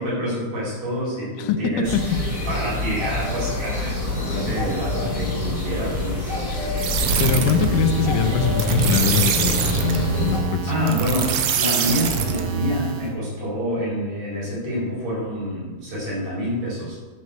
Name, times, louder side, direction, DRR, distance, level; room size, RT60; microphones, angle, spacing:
voice 1, 0.0-1.9 2.5-6.8 10.7-17.0, equal, 55° right, -6 dB, 5.6 m, -27 dB
voice 2, 1.4-2.0 2.3-2.5 6.5-6.8 7.2-11.0, left 8 dB, 90° left, 9 dB, 2.3 m, -23 dB
sound 1, 1.8-10.4, left 2 dB, 10° left, 2.0 m, -26 dB
sound 2, 6.8-13.1, right 7 dB, 75° right, 2.3 m, -24 dB
10.5 x 6.4 x 6.7 m, 1.3 s
omnidirectional pair, 3.6 m